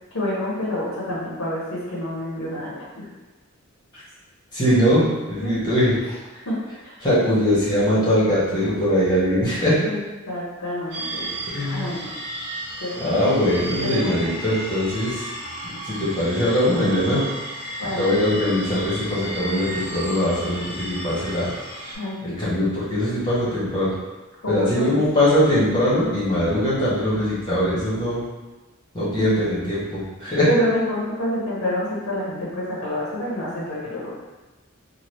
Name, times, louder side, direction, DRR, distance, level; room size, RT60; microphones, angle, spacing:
voice 1, 0.1-3.1 5.4-5.5 5.8-5.9 6.4-6.6 6.8-7.0 9.8-11.3 11.6-12.2 12.8-13.0 13.8-14.1 17.8-18.2 21.9-22.4 24.4-24.8 29.1-29.3 30.5-34.1, left 1 dB, 75° left, -6 dB, 0.8 m, -28 dB
voice 2, 4.5-5.0 5.3-5.9 7.0-9.8 11.5-11.9 13.0-15.3 15.8-17.2 18.0-21.5 22.2-23.9 24.5-28.2 28.9-30.5, equal, 20° left, -9 dB, 1.1 m, -21 dB
sound 1, 10.9-22.0, right 1 dB, 55° right, 0.8 m, -33 dB
2.8 x 2.2 x 3.3 m, 1.1 s
head